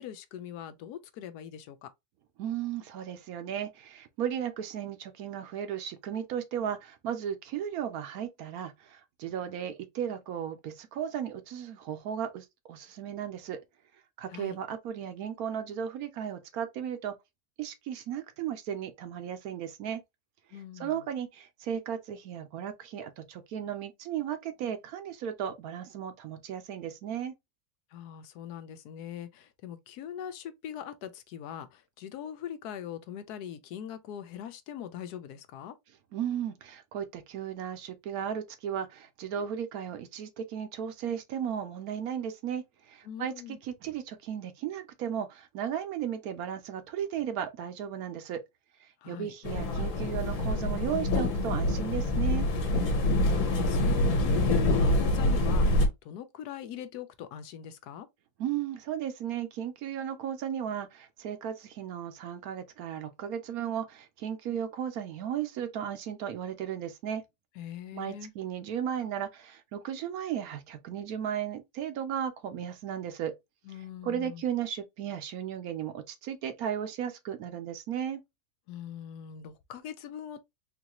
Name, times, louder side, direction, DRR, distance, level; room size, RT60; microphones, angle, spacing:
voice 1, 0.0-1.9 14.3-14.6 20.5-21.0 27.9-35.7 43.0-43.6 49.0-49.3 53.2-58.1 67.6-68.3 73.6-74.4 78.7-80.4, left 10 dB, 80° left, 1.1 m, -41 dB
voice 2, 2.4-13.6 14.2-17.1 17.6-20.0 20.5-27.3 36.1-42.6 42.9-48.4 49.1-52.5 58.4-67.2 67.9-73.4 74.0-78.2, right 9 dB, 70° right, 1.0 m, -35 dB
sound 1, 49.4-55.9, left 1 dB, 60° left, 1.3 m, -26 dB
3.9 x 2.6 x 2.8 m
omnidirectional pair, 1.7 m